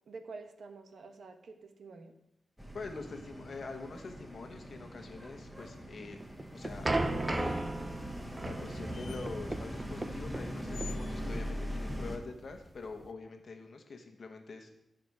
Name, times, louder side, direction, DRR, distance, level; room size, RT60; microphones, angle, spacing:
voice 1, 0.1-2.1, right 4 dB, 75° right, 6 dB, 1.1 m, -48 dB
sound 1, 2.6-12.2, equal, 5° right, 1.3 m, -41 dB
voice 2, 2.7-6.2 6.5-14.7, left 4 dB, 55° left, 5 dB, 1.3 m, -45 dB
sound 2, 6.2-13.1, right 2 dB, 20° right, 0.7 m, -36 dB
sound 3, 7.2-7.8 8.9-9.3 10.7-11.2, left 7 dB, 90° left, 0.7 m, -50 dB
14.5 x 5.2 x 4.8 m, 0.83 s
wide cardioid pair, 115°, 0 cm